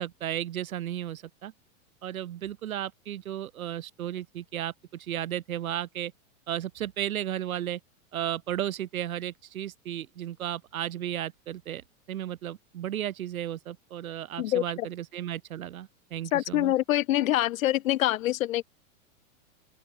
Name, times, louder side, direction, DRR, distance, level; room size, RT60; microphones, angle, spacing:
voice 1, 0.0-1.5 2.0-6.1 6.5-7.8 8.1-11.8 12.1-16.7, right 11 dB, 80° right, 4.9 m, -34 dB
voice 2, 14.4-14.9 16.3-18.6, left 14 dB, 75° left, 1.0 m, -25 dB
open air
supercardioid pair, 170°, 41 cm